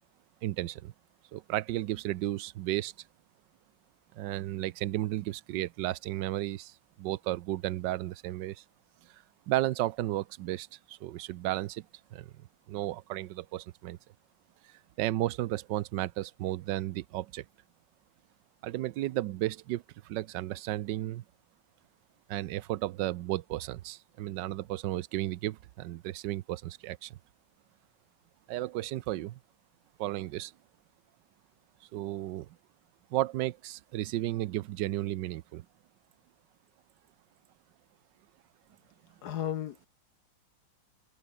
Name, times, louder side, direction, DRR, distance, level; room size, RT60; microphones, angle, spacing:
voice 1, 0.4-0.9 1.3-2.9 4.1-8.6 9.5-11.8 12.1-12.3 12.7-14.0 15.0-17.4 18.6-21.2 22.3-27.2 28.5-29.4 30.0-30.5 31.9-32.5 33.1-35.6, right 15 dB, 70° right, 1.2 m, -33 dB
voice 2, 39.2-39.9, left 11 dB, 65° left, 1.1 m, -34 dB
omnidirectional pair, 2.3 m